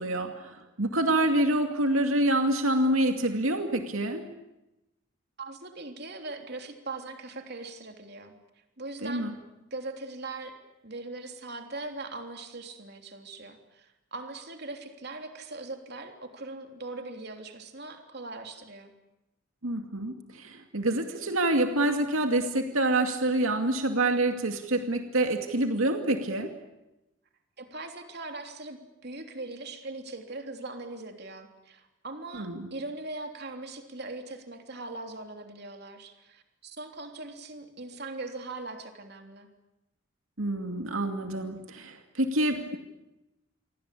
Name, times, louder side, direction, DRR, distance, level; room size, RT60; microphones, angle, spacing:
voice 1, 0.0-4.2 9.0-9.3 19.6-26.5 32.3-32.7 40.4-42.8, right 1 dB, 85° right, 5 dB, 2.4 m, -27 dB
voice 2, 5.4-8.4 8.8-9.3 9.7-10.5 10.8-18.9 27.6-39.5, right 2 dB, 50° right, 4 dB, 3.4 m, -40 dB
28.5 x 24.0 x 8.5 m, 0.96 s
head